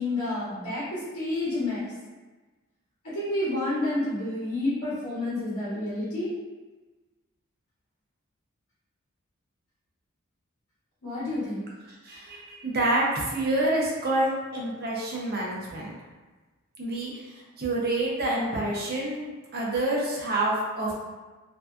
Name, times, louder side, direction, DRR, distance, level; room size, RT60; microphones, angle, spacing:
voice 1, 0.0-1.9 3.0-6.3 11.0-11.6, left 2 dB, 70° left, -10 dB, 1.0 m, -29 dB
voice 2, 12.0-15.9 16.8-20.9, right 1 dB, 45° right, -4 dB, 0.6 m, -28 dB
2.6 x 2.2 x 2.3 m, 1.2 s
head